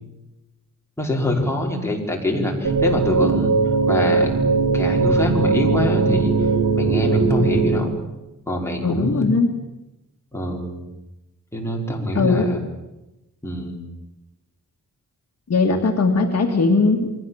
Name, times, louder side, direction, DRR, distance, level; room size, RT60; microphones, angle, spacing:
voice 1, 1.0-3.5 3.8-4.3 4.7-6.3 6.8-7.9 8.5-9.3 10.3-10.9 11.5-12.6 13.4-13.8, left 1 dB, 10° left, -1 dB, 5.0 m, -24 dB
sound 1, 2.6-7.8, right 4 dB, 80° right, 3.0 m, -19 dB
voice 2, 8.8-9.5 12.2-12.5 15.5-17.1, left 3 dB, 50° left, 2 dB, 2.4 m, -19 dB
29.0 x 22.5 x 7.4 m, 0.99 s
wide cardioid pair, 140°, 32 cm